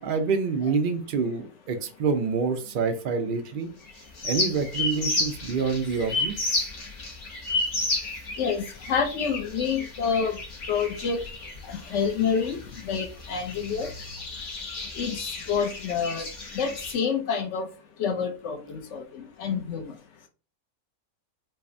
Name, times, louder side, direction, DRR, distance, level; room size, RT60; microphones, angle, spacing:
voice 1, 0.0-3.7 4.2-6.6, right 5 dB, 70° right, 0.4 m, -27 dB
sound 1, 3.8-16.9, left 2 dB, 90° left, 1.6 m, -32 dB
voice 2, 8.4-10.4 10.7-11.2 11.9-12.6 12.8-13.9 15.0-16.3 16.5-17.6 18.0-19.0 19.4-19.8, left 6 dB, 65° left, 0.8 m, -27 dB
5.6 x 2.0 x 2.6 m
omnidirectional pair, 1.6 m